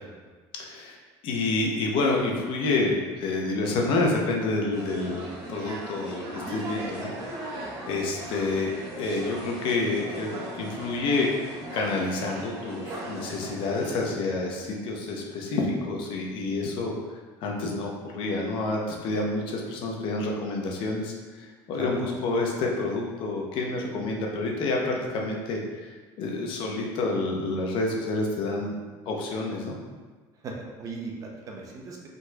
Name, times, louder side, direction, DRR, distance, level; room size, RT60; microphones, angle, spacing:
voice 1, 0.6-1.0 1.2-11.3 11.7-16.9 17.4-28.7 29.1-29.7, left 3 dB, 55° left, 0 dB, 0.8 m, -28 dB
large dutch crowd external walla, 4.7-14.0, right 1 dB, 85° right, 1.3 m, -37 dB
voice 2, 21.7-22.4 30.4-32.1, right 3 dB, 35° right, -1 dB, 0.7 m, -39 dB
5.3 x 4.0 x 2.3 m, 1.3 s
cardioid pair, 155°, 10 cm